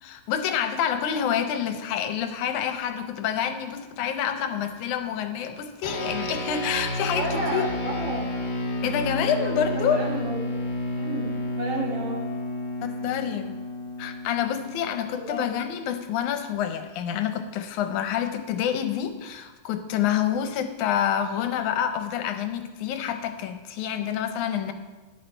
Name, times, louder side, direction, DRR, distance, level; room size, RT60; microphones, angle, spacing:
voice 1, 0.0-7.7 8.8-10.0 12.8-13.6 14.0-24.7, left 9 dB, 85° left, 8 dB, 2.3 m, -27 dB
sound 1, 5.8-15.5, left 1 dB, 45° left, 0.6 m, -31 dB
voice 2, 7.1-8.3 9.4-10.4 11.0-12.2 15.2-15.5, right 2 dB, 55° right, -1 dB, 2.7 m, -32 dB
13.0 x 9.9 x 4.5 m, 1.2 s
omnidirectional pair, 3.4 m